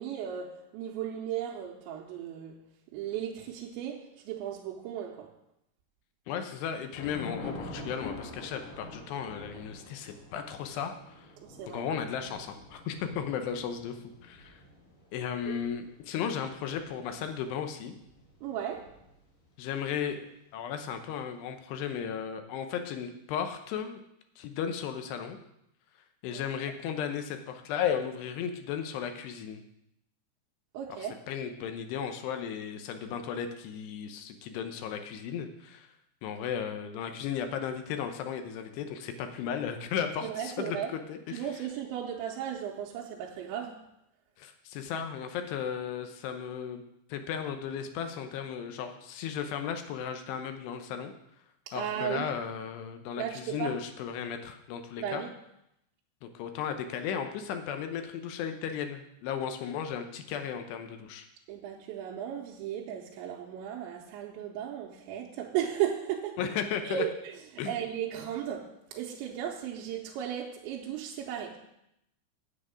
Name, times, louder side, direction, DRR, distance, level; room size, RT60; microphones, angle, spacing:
voice 1, 0.0-5.4 11.4-11.8 15.5-15.6 18.4-19.0 26.3-26.4 30.7-31.2 40.2-40.9 41.3-43.9 51.7-52.3 53.2-53.8 55.0-55.3 61.5-66.4 66.8-71.7, right 10 dB, 80° right, 3.0 m, -36 dB
voice 2, 6.3-11.3 11.7-14.6 15.1-17.9 19.6-24.0 24.4-25.4 26.2-29.6 31.3-35.9 36.2-41.4 44.4-46.8 47.1-51.1 51.7-55.2 56.2-61.3 66.4-67.0 67.6-67.8, left 8 dB, 75° left, 2.6 m, -35 dB
Thunder / Rain, 6.9-19.5, left 2 dB, 55° left, 2.1 m, -46 dB
9.8 x 7.7 x 5.0 m
omnidirectional pair, 5.4 m